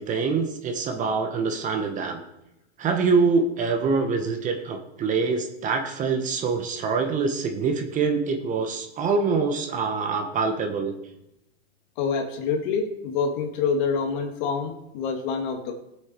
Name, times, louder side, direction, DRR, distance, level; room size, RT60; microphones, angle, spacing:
voice 1, 0.0-2.2 2.8-11.0, right 4 dB, 25° right, 4 dB, 1.4 m, -25 dB
voice 2, 12.0-15.7, left 5 dB, 45° left, 4 dB, 2.4 m, -26 dB
18.5 x 8.0 x 4.6 m, 0.86 s
hypercardioid pair, 140°, 33 cm